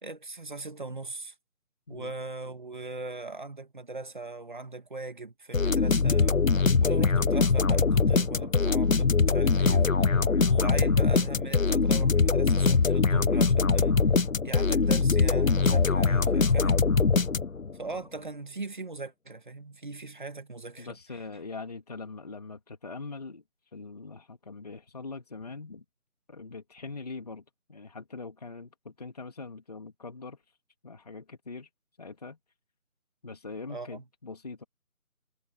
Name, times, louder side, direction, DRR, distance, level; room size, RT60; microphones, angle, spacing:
voice 1, 0.0-1.3 1.9-14.0 14.4-16.9 17.8-20.9 33.7-34.0, right 3 dB, 35° right, 2.0 m, -40 dB
sound 1, 5.5-17.7, left 4 dB, 65° left, 1.2 m, -23 dB
voice 2, 20.8-23.4 23.7-25.8 26.3-27.4 27.7-30.4 30.8-31.7 32.0-32.4 33.2-34.6, left 3 dB, 25° left, 2.9 m, -42 dB
figure-of-eight pair, 175°, 43 cm